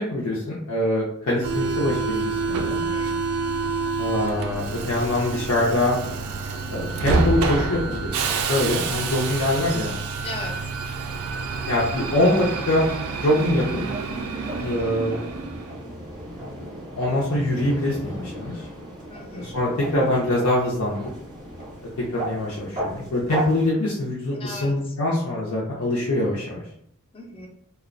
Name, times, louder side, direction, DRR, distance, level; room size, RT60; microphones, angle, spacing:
voice 1, 0.0-2.8 4.0-6.0 6.7-8.2 8.5-9.9 11.6-12.9 13.2-13.8 14.6-15.2 17.0-18.7 19.3-21.1 22.1-26.6, left 1 dB, 75° left, -6 dB, 0.5 m, -24 dB
Subway metro underground, 1.4-15.8, right 4 dB, 85° right, 0.3 m, -28 dB
voice 2, 2.7-3.2 10.2-10.7 14.6-14.9 19.1-19.6 24.3-25.0 27.1-27.5, left 2 dB, 25° left, 2 dB, 0.4 m, -38 dB
sound 1, 13.0-23.7, right 1 dB, 20° right, 0.6 m, -36 dB
2.4 x 2.0 x 2.5 m, 0.70 s
head